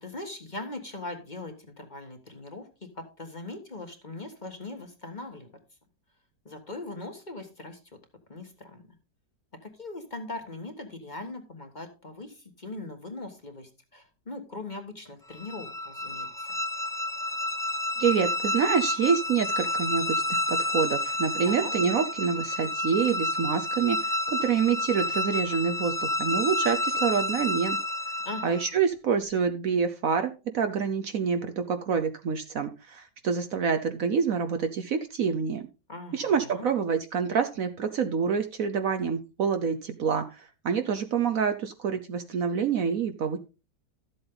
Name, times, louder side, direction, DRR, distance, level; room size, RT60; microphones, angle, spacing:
voice 1, 0.0-2.6 2.9-5.5 6.4-7.8 8.3-8.8 9.6-16.6 21.4-21.7 28.2-28.6 35.9-36.7, left 2 dB, 25° left, 5 dB, 1.6 m, -40 dB
sound 1, 15.3-28.7, left 1 dB, 5° left, 0.5 m, -30 dB
voice 2, 18.0-27.8 28.4-35.6 36.1-43.4, right 6 dB, 60° right, 8 dB, 1.1 m, -27 dB
12.5 x 7.9 x 3.8 m, 0.30 s
omnidirectional pair, 1.8 m